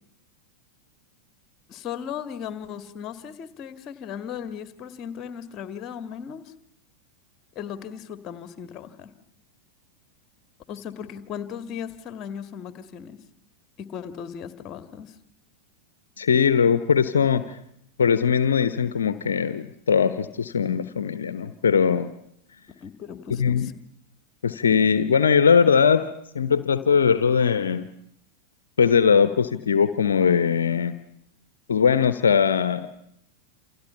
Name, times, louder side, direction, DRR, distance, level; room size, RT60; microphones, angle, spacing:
voice 1, 1.7-6.5 7.6-9.1 10.7-13.2 13.8-15.2 22.7-23.7, left 8 dB, 30° left, 11 dB, 2.0 m, -37 dB
voice 2, 16.2-17.6 18.0-22.1 23.3-23.7 24.4-27.9 28.8-30.9 31.7-32.9, left 6 dB, 70° left, 13 dB, 1.0 m, -20 dB
28.5 x 28.0 x 5.7 m, 0.73 s
figure-of-eight pair, 90°, 0 cm